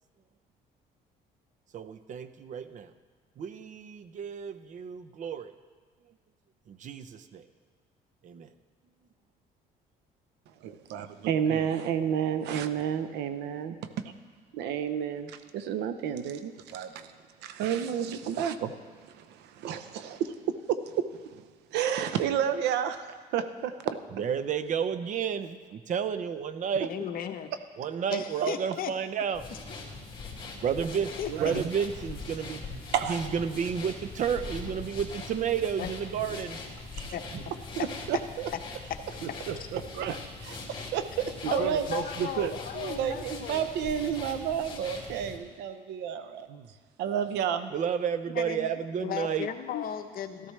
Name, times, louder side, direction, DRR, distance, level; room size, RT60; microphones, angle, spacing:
voice 1, 1.7-2.9 3.4-5.5 6.1-6.2 6.7-7.5 8.2-8.5 24.1-26.9 27.8-29.5 30.6-31.1 31.4-32.8 33.1-36.6 37.3-37.4 47.7-49.5, right 7 dB, 50° right, 12 dB, 0.7 m, -31 dB
voice 2, 10.6-13.8 14.5-17.1 17.4-18.7 19.1-20.3 20.7-21.0 21.3-21.4 21.7-24.0 31.3-31.7 32.9-33.2 36.9-37.1 37.8-38.5 39.2-46.7 47.0-47.7, right 8 dB, 85° right, 10 dB, 0.8 m, -31 dB
voice 3, 26.9-27.5 28.1-28.9 31.2-31.5 35.8-35.9 37.1-37.5 37.8-37.9 41.5-43.7 48.3-48.7 49.0-50.5, left 9 dB, 60° left, 7 dB, 0.9 m, -36 dB
sound 1, 29.3-45.4, left 3 dB, 30° left, 2.5 m, -41 dB
13.5 x 13.5 x 3.3 m, 1.5 s
cardioid pair, 110°, 17 cm